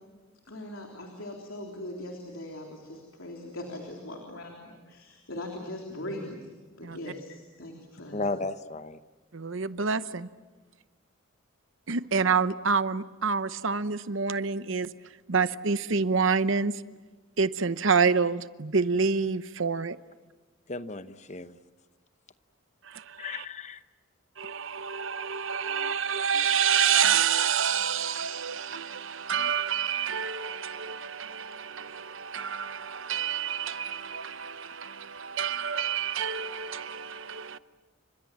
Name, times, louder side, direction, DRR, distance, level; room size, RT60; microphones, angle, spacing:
voice 1, 0.5-6.5 6.8-8.2, left 1 dB, 70° left, 3.6 m, -40 dB
voice 2, 8.1-9.0 20.7-21.6 23.2-23.8, left 3 dB, 35° left, 0.8 m, -34 dB
voice 3, 9.3-10.3 11.9-14.9 15.3-16.8 17.4-20.0 22.8-23.4 24.4-37.6, right 6 dB, 65° right, 0.9 m, -28 dB
30.0 x 26.0 x 7.5 m
head